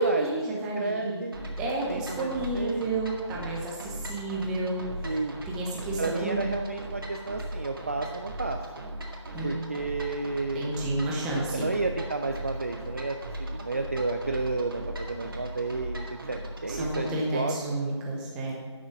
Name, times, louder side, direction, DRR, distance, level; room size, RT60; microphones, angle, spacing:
voice 1, 0.0-1.2 1.6-5.1 5.5-6.4 9.3-9.5 10.5-11.7 16.7-18.5, right 2 dB, 5° right, -3 dB, 0.8 m, -31 dB
voice 2, 0.5-1.3 1.9-2.9 5.0-5.4 6.0-8.6 9.4-10.7 11.5-17.8, right 3 dB, 30° right, 4 dB, 0.4 m, -32 dB
sound 1, 1.3-17.2, right 1 dB, 50° right, 1.9 m, -38 dB
11.5 x 6.2 x 7.3 m, 1.5 s
figure-of-eight pair, 160°, 15 cm